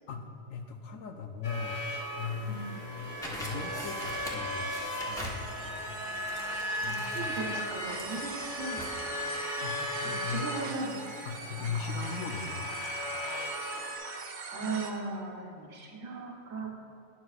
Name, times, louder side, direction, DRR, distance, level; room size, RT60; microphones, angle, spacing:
voice 1, 0.1-1.8 2.1-4.7 5.0-6.0 6.8-7.3 9.6-10.5 11.2-12.7, left 5 dB, 75° left, 5 dB, 1.1 m, -38 dB
sound 1, 1.4-14.0, left 1 dB, 50° left, 1.9 m, -37 dB
sound 2, 2.4-14.9, right 4 dB, 50° right, 0.6 m, -42 dB
sound 3, 3.2-9.0, equal, 5° left, 0.8 m, -44 dB
voice 2, 6.9-8.8 9.1-9.2 10.0-11.1 11.4-11.8 14.5-16.7, right 3 dB, 75° right, 0 dB, 1.5 m, -38 dB
12.0 x 9.3 x 2.4 m, 2.6 s
omnidirectional pair, 1.4 m